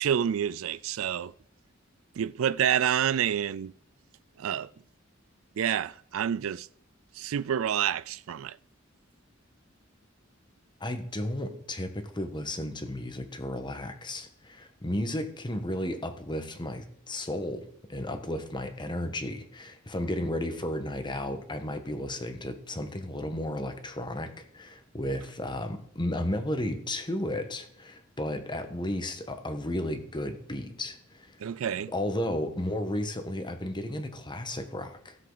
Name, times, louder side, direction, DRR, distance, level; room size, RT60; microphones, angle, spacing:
voice 1, 0.0-1.3 2.2-3.7 4.4-4.7 5.6-6.7 7.2-8.6 31.4-31.9, right 9 dB, 80° right, 0.4 m, -28 dB
voice 2, 10.8-31.4 31.9-35.2, left 1 dB, 25° left, 1.3 m, -33 dB
16.5 x 7.6 x 4.0 m
head